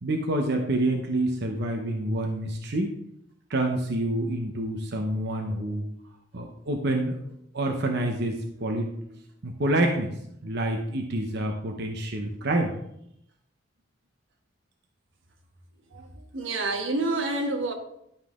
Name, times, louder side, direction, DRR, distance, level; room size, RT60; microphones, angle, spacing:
voice 1, 0.0-2.9 3.5-5.9 6.3-7.2 7.5-10.1 10.4-12.8, right 1 dB, 60° right, 0.9 m, -27 dB
voice 2, 15.9-17.7, right 2 dB, 90° right, 1.3 m, -28 dB
11.5 x 5.6 x 3.6 m
head